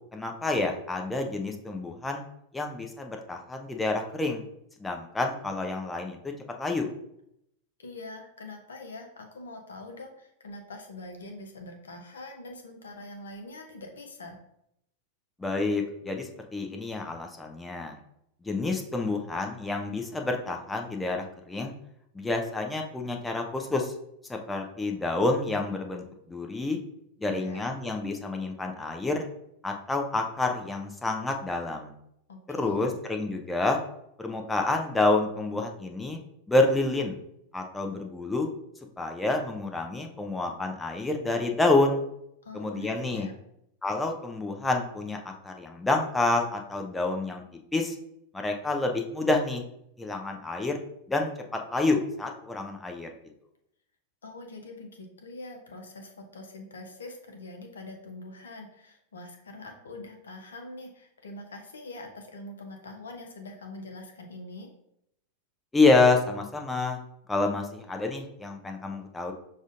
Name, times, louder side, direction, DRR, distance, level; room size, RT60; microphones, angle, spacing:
voice 1, 0.1-2.2 2.5-4.4 4.8-6.2 6.6-6.9 15.4-18.0 18.4-21.7 22.1-23.9 24.3-26.8 27.2-29.2 29.6-31.9 32.5-33.8 34.2-36.2 36.5-37.2 37.5-38.5 39.0-42.0 42.5-43.3 43.8-47.4 47.7-48.0 48.3-49.6 50.0-50.8 51.1-53.1 65.7-67.0 67.3-69.3, left 2 dB, 10° left, 3 dB, 0.5 m, -28 dB
voice 2, 7.8-14.4 27.3-27.6 32.3-33.0 42.4-43.3 54.2-64.7, left 2 dB, 70° left, 3 dB, 0.7 m, -44 dB
6.2 x 2.4 x 2.5 m, 0.76 s
figure-of-eight pair, 90°, 0 cm